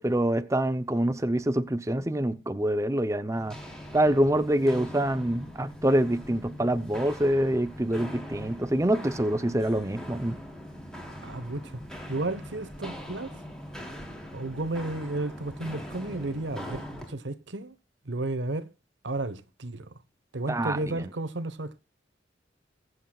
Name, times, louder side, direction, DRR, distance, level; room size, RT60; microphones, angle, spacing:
voice 1, 0.0-3.6 3.9-10.4 20.5-20.8, right 1 dB, 15° right, 0.6 m, -26 dB
Walk footsteps, 3.3-17.1, equal, 5° left, 3.4 m, -42 dB
voice 2, 11.2-11.8 12.1-13.3 14.3-17.7 18.1-18.7 19.0-19.9 20.3-21.8, right 2 dB, 85° right, 1.1 m, -33 dB
22.0 x 8.0 x 2.3 m
head